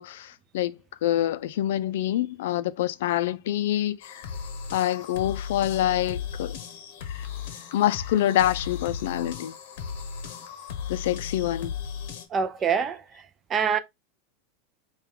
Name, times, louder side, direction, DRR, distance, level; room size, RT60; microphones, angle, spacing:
voice 1, 0.0-4.3 4.7-6.6 7.7-9.5 10.9-11.7, left 12 dB, 75° left, 0.3 m, -26 dB
sound 1, 4.0-12.3, left 7 dB, 60° left, 0.8 m, -36 dB
voice 2, 12.3-13.2 13.5-13.8, right 6 dB, 20° right, 0.4 m, -25 dB
4.5 x 2.3 x 3.6 m
supercardioid pair, 155°, 0 cm